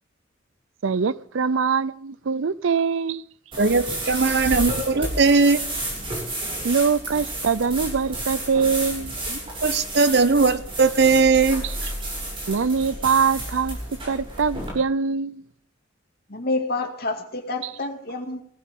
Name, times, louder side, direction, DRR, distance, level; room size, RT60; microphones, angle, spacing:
voice 1, 0.8-3.2 6.6-9.1 11.6-11.7 12.5-13.8 14.0-15.4 17.6-17.7, right 5 dB, 85° right, 0.6 m, -23 dB
sound 1, 3.5-14.7, right 1 dB, 25° right, 7.3 m, -31 dB
voice 2, 3.6-5.6 9.3-11.9, right 4 dB, 60° right, 0.9 m, -19 dB
voice 3, 16.3-18.4, left 2 dB, 55° left, 2.3 m, -28 dB
19.0 x 15.0 x 3.7 m
head